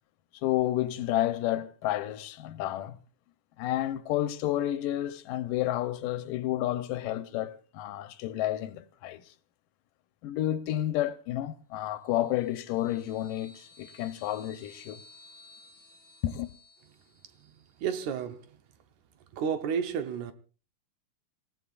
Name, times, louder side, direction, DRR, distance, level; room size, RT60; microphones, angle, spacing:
voice 1, 0.4-3.0 3.6-9.2 10.2-15.0 16.2-16.5, left 13 dB, 90° left, 2.5 m, -30 dB
sound 1, 12.1-17.5, left 3 dB, 85° right, 8.1 m, -56 dB
voice 2, 17.4-18.6 19.3-20.3, right 7 dB, 70° right, 2.2 m, -32 dB
26.5 x 16.0 x 2.5 m
omnidirectional pair, 3.7 m